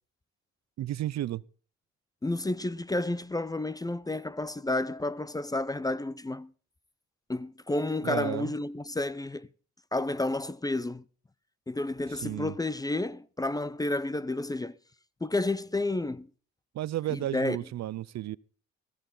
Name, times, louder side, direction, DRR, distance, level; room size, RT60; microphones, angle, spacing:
voice 1, 0.8-1.4 8.0-8.5 12.1-12.5 16.7-18.4, right 13 dB, 60° right, 0.6 m, -33 dB
voice 2, 2.2-6.5 7.3-9.5 9.9-11.0 11.7-14.8 15.2-16.3 17.1-17.6, left 2 dB, 10° left, 0.5 m, -31 dB
15.5 x 14.5 x 3.9 m
cardioid pair, 90°, 30 cm